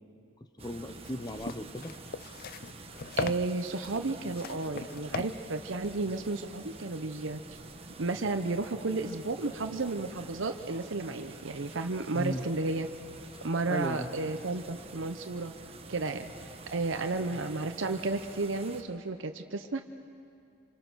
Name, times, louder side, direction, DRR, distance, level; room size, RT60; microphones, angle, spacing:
voice 1, 0.6-2.0 12.1-12.4 13.3-14.1 17.1-17.4, left 1 dB, 20° left, 9 dB, 0.9 m, -37 dB
sound 1, 0.6-18.8, right 3 dB, 30° right, 1.3 m, -48 dB
sound 2, 0.9-6.9, left 5 dB, 50° left, 0.5 m, -40 dB
voice 2, 3.2-7.6 8.0-12.9 13.4-15.5 15.9-19.8, right 3 dB, 65° right, 7 dB, 0.8 m, -33 dB
26.5 x 26.5 x 6.3 m, 2.5 s
head